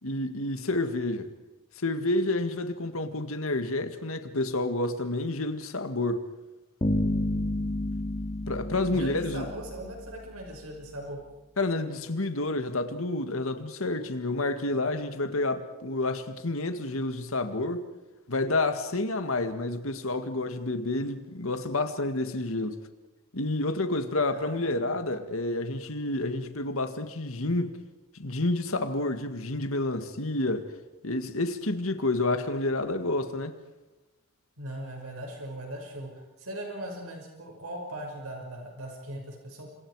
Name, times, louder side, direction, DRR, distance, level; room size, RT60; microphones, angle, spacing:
voice 1, 0.0-1.3 1.8-6.2 8.5-9.5 11.6-17.8 18.3-22.8 23.3-27.7 28.1-30.7 31.0-33.6, left 2 dB, 75° left, 1.8 m, -29 dB
sound 1, 6.8-10.2, left 1 dB, 30° left, 2.5 m, -30 dB
voice 2, 8.9-11.2 24.3-25.1 34.6-39.7, right 1 dB, 90° right, 5.9 m, -39 dB
30.0 x 27.0 x 4.8 m
head